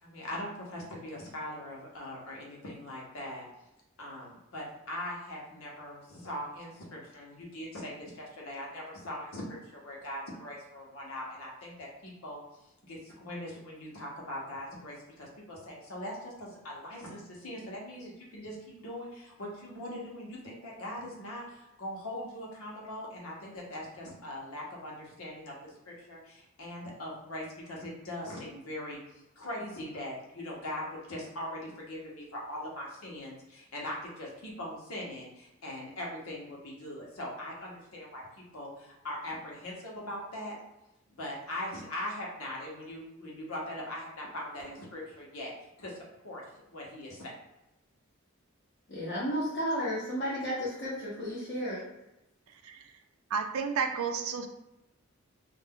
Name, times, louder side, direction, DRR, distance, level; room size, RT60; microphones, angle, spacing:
voice 1, 0.0-3.5 4.0-12.4 12.8-29.0 29.4-38.3 38.5-40.6 41.2-45.5 45.8-46.0 46.2-46.4 46.7-47.3, left 1 dB, 90° left, -3 dB, 0.9 m, -41 dB
voice 2, 48.9-51.8, equal, 50° left, -11 dB, 0.9 m, -33 dB
voice 3, 53.3-54.5, right 6 dB, 90° right, 6 dB, 0.4 m, -31 dB
2.5 x 2.2 x 3.6 m, 0.91 s
head